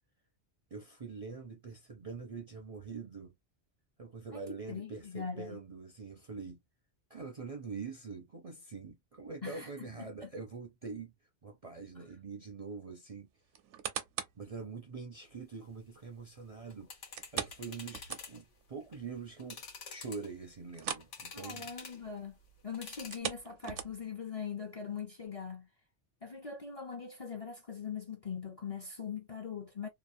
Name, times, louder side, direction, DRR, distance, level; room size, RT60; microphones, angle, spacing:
voice 1, 0.7-3.3 4.0-6.6 7.1-11.1 11.4-13.3 14.4-16.9 17.3-21.7, right 4 dB, 45° right, 0.5 m, -44 dB
voice 2, 4.7-5.6 9.4-10.3 21.3-22.4 22.6-25.7 26.2-29.9, left 6 dB, 45° left, 0.5 m, -41 dB
sound 1, 13.5-14.5 15.0-15.1 17.2-18.6 19.0-19.1 19.5-19.6 20.7-21.2 21.4-21.7 23.0-24.2 24.8-24.9, right 9 dB, 85° right, 0.9 m, -40 dB
sound 2, 16.6-18.4 18.8-19.0 19.4-20.5 21.0-22.1 22.7-23.2, left 5 dB, 85° left, 1.2 m, -47 dB
2.9 x 2.1 x 2.5 m
omnidirectional pair, 1.2 m